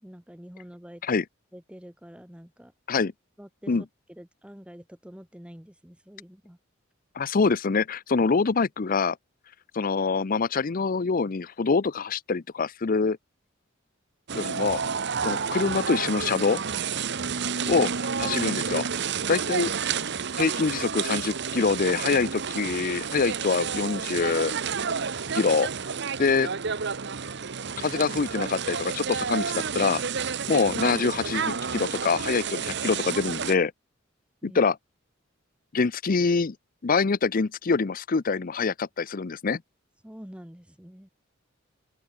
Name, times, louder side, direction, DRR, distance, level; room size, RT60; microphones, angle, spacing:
voice 1, 0.0-1.0 1.5-2.7 3.4-3.7 4.1-6.6 20.1-20.4 34.4-34.6 40.0-41.1, equal, 5° right, 1.2 m, -46 dB
voice 2, 7.2-9.2 9.7-13.2 14.3-14.8 15.2-16.6 17.7-18.8 19.3-19.7 20.4-24.5 25.3-25.7 26.2-26.5 27.8-30.0 30.5-33.7 34.4-34.8 35.7-36.5 36.8-39.6, left 4 dB, 45° left, 0.6 m, -25 dB
sound 1, 14.3-33.6, right 6 dB, 60° right, 1.1 m, -30 dB
open air
head